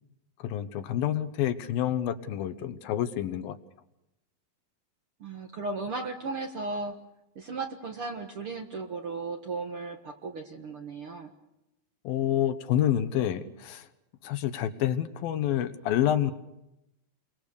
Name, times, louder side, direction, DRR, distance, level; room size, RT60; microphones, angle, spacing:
voice 1, 0.4-3.6 12.0-13.9 14.2-16.3, left 11 dB, 80° left, 10 dB, 2.9 m, -28 dB
voice 2, 5.2-6.9 7.3-11.3, right 3 dB, 50° right, 3 dB, 1.7 m, -35 dB
30.0 x 23.5 x 6.8 m, 0.92 s
omnidirectional pair, 4.2 m